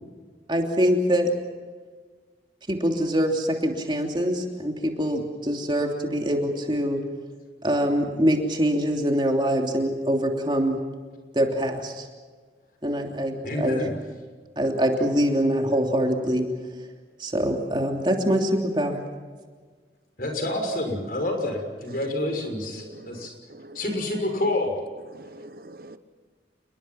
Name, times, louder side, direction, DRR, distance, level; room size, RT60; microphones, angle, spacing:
voice 1, 0.5-1.3 2.7-7.0 7.6-10.8 11.3-12.1 12.8-13.8 14.6-16.4 17.2-19.0, equal, 25° right, 2 dB, 3.1 m, -24 dB
voice 2, 13.4-13.9 20.2-23.3 23.7-24.8, left 1 dB, 55° left, 4 dB, 6.2 m, -28 dB
voice 3, 22.8-23.8 25.1-26.0, right 1 dB, 55° right, 11 dB, 1.2 m, -45 dB
29.5 x 21.5 x 5.9 m, 1.5 s
head